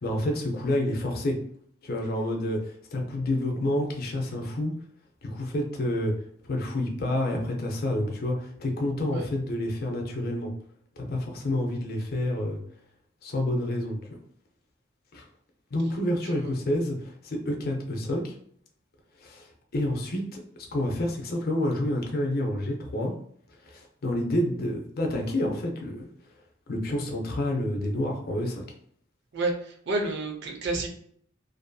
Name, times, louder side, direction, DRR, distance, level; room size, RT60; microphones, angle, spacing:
voice 1, 0.0-1.4 1.8-4.7 5.2-6.1 6.4-10.5 11.0-12.6 13.2-14.0 15.1-15.2 15.7-18.3 19.2-20.4 20.7-23.1 23.6-26.1 26.7-28.7, left 1 dB, 50° left, 1 dB, 0.5 m, -28 dB
voice 2, 29.3-30.9, right 2 dB, 60° right, 1 dB, 0.6 m, -30 dB
2.6 x 2.6 x 2.2 m, 0.62 s
head